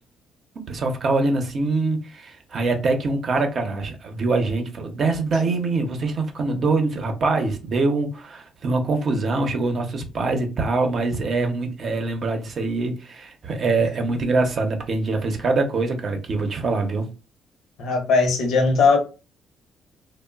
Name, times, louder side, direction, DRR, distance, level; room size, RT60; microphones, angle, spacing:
voice 1, 0.6-17.1, right 3 dB, 55° right, 0.6 m, -24 dB
voice 2, 17.8-19.0, left 4 dB, 85° left, 0.6 m, -18 dB
2.9 x 2.0 x 2.2 m
cardioid pair, 90°, 0 cm